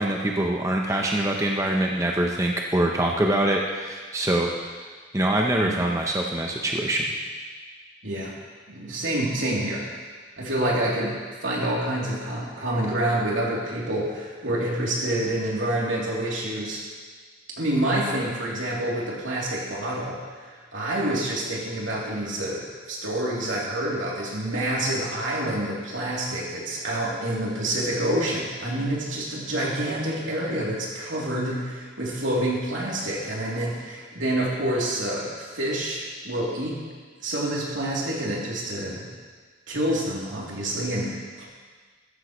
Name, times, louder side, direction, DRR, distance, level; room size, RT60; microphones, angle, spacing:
voice 1, 0.0-4.5 5.1-7.0, right 1 dB, 15° right, 0 dB, 0.8 m, -24 dB
voice 2, 8.0-8.3 8.7-9.9 10.4-11.2 11.4-16.8 17.6-20.2 20.7-36.8 37.2-39.1 39.7-41.5, right 1 dB, 80° right, -5 dB, 3.1 m, -27 dB
14.0 x 13.5 x 3.2 m, 1.5 s
head